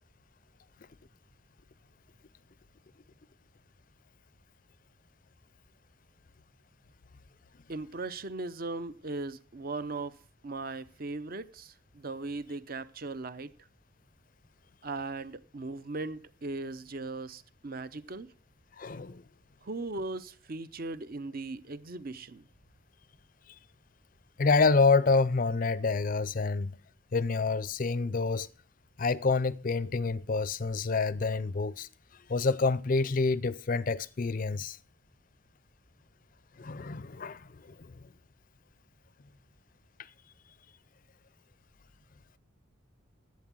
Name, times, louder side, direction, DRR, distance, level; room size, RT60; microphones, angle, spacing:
voice 1, 7.7-10.2 10.4-13.5 14.8-18.3 19.6-22.4, right 3 dB, 45° right, 0.6 m, -38 dB
voice 2, 18.8-19.2 24.4-26.7 27.1-28.5 29.0-31.9 32.3-34.8 36.6-37.9, left 4 dB, 40° left, 0.5 m, -27 dB
11.5 x 8.2 x 6.1 m
head